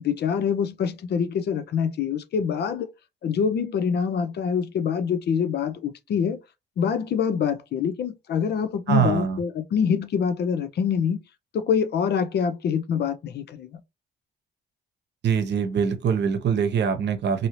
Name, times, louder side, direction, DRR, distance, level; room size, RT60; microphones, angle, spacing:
voice 1, 0.0-2.9 3.2-6.4 6.8-11.2 11.5-13.8, left 7 dB, 55° left, 0.5 m, -25 dB
voice 2, 8.9-9.4 15.2-17.5, right 7 dB, 60° right, 0.8 m, -23 dB
2.7 x 2.7 x 3.0 m
cardioid pair, 90°, 20 cm